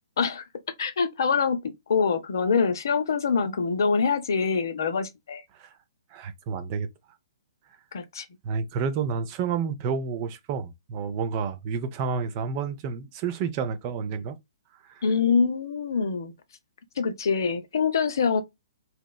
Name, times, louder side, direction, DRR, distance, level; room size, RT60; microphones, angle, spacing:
voice 1, 0.8-5.4 7.9-8.3 15.0-16.3 17.0-18.4, left 5 dB, 60° left, 0.5 m, -25 dB
voice 2, 6.1-6.9 8.4-14.4 14.8-15.0, right 6 dB, 35° right, 0.4 m, -30 dB
2.9 x 2.0 x 2.3 m
figure-of-eight pair, 125°, 2 cm